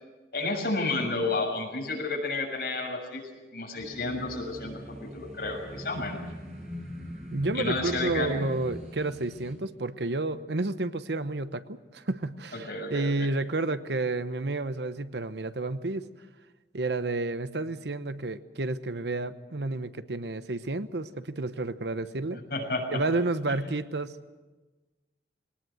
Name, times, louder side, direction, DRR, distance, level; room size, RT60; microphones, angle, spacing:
voice 1, 0.3-3.2 3.5-6.2 7.5-8.4 12.5-13.3 22.5-23.0, left 2 dB, 60° left, 0 dB, 6.4 m, -31 dB
sound 1, 3.7-9.5, equal, 40° right, 7.3 m, -41 dB
voice 2, 7.3-16.1 16.7-22.4 22.9-24.4, right 2 dB, 75° right, 12 dB, 0.9 m, -31 dB
21.5 x 18.5 x 7.8 m, 1.2 s
head